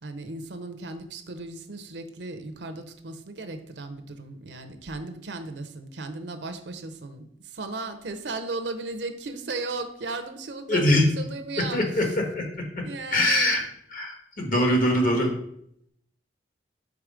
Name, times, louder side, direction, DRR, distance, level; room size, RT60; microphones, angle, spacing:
voice 1, 0.0-12.1 12.8-13.7 14.5-15.1, right 3 dB, 75° right, 7 dB, 0.7 m, -36 dB
voice 2, 10.7-11.0 11.7-12.0 12.3-12.4 13.1-13.6 13.9-15.3, left 1 dB, 50° left, 2 dB, 1.3 m, -22 dB
4.8 x 3.9 x 5.0 m, 0.70 s
head